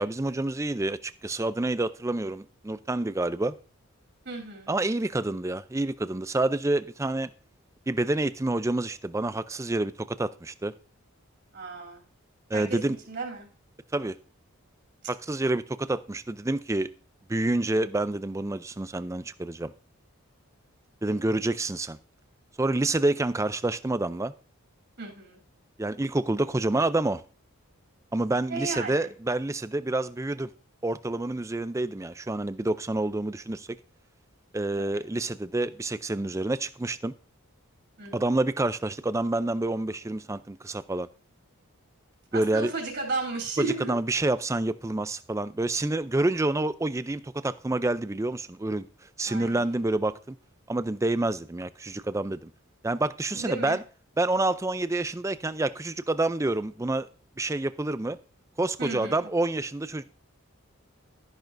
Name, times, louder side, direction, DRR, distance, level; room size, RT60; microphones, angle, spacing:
voice 1, 0.0-3.5 4.7-7.3 7.9-10.7 12.5-13.0 13.9-14.2 15.1-16.9 17.3-19.7 21.0-22.0 22.6-24.3 25.8-27.2 28.1-30.5 30.8-33.7 34.5-37.1 38.1-41.1 42.3-42.7 43.6-48.9 49.2-50.4 50.7-52.5 52.8-53.8 54.2-57.1 57.4-58.2 58.6-60.0, right 2 dB, 15° right, 0.4 m, -28 dB
voice 2, 4.2-4.7 11.5-12.0 12.5-13.5 21.1-21.2 25.0-25.4 28.5-29.1 34.8-35.0 38.0-38.2 42.3-43.9 49.3-49.8 53.3-53.8 58.8-59.2, right 3 dB, 55° right, 3.1 m, -34 dB
12.5 x 10.5 x 2.6 m
head